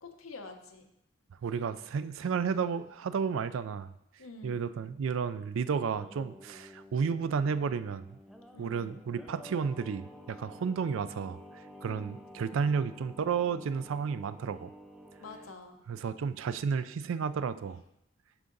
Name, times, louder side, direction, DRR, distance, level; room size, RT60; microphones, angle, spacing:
voice 1, 0.0-0.9 4.2-4.6 8.5-9.0 11.8-12.2 15.2-15.8, left 3 dB, 85° left, 5 dB, 0.8 m, -47 dB
voice 2, 1.4-3.9 4.4-8.1 8.6-11.4 11.8-14.7 15.9-17.8, right 6 dB, 70° right, 14 dB, 0.3 m, -32 dB
Singing, 5.8-15.5, equal, ahead, 0.4 m, -51 dB
11.0 x 3.7 x 3.9 m, 0.84 s
head